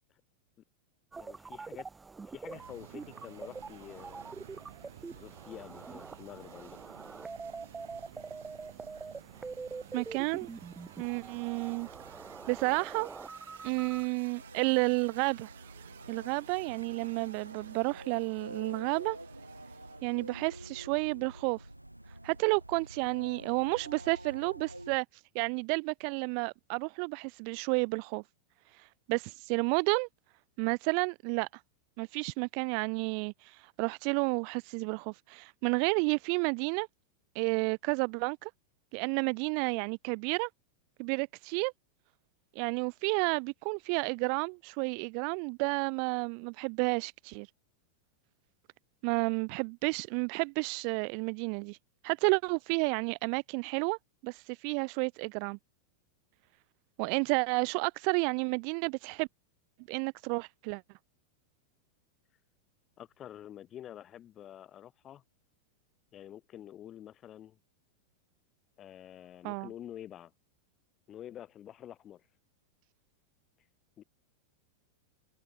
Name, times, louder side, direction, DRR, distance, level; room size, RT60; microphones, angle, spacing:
sound 1, 1.1-14.1, right 4 dB, 15° right, 0.9 m, -45 dB
voice 1, 1.2-1.9 2.3-4.2 5.1-6.8 63.0-65.2 66.1-67.6 68.8-70.3 71.1-72.2 74.0-74.1, left 11 dB, 30° left, 6.0 m, -48 dB
sound 2, 2.5-20.8, right 11 dB, 60° right, 3.5 m, -54 dB
voice 2, 9.9-10.5 11.0-11.9 12.5-13.1 13.6-15.5 16.1-19.2 20.0-21.6 22.2-25.1 25.3-28.2 29.1-30.1 30.6-31.5 32.0-36.9 37.4-38.5 38.9-40.5 41.0-41.7 42.6-47.5 49.0-51.8 52.0-54.0 54.2-55.6 57.0-59.3 59.9-60.8 69.4-69.7, right 40 dB or more, 45° right, 0.3 m, -31 dB
sound 3, 14.3-25.0, right 1 dB, 85° right, 3.2 m, -48 dB
figure-of-eight pair, 90°, 0 cm